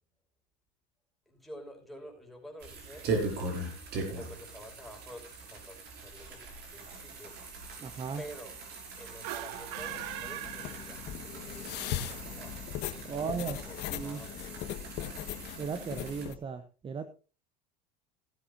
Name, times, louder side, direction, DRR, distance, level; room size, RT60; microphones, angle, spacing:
voice 1, 1.3-3.1 4.2-7.4 8.2-8.6 9.0-12.5 13.0-13.4 13.6-13.8 14.0-14.7, equal, ahead, 0 dB, 5.6 m, -49 dB
sound 1, 2.6-16.3, right 3 dB, 55° right, 6.4 m, -40 dB
voice 2, 7.8-8.2 13.0-14.2 15.6-17.1, right 6 dB, 25° right, 11 dB, 1.0 m, -36 dB
sound 2, 9.2-11.5, right 14 dB, 75° right, 1.1 m, -40 dB
sound 3, 9.8-16.3, left 12 dB, 55° left, 1.5 m, -40 dB
16.5 x 12.5 x 2.7 m, 0.34 s
supercardioid pair, 115°, 20 cm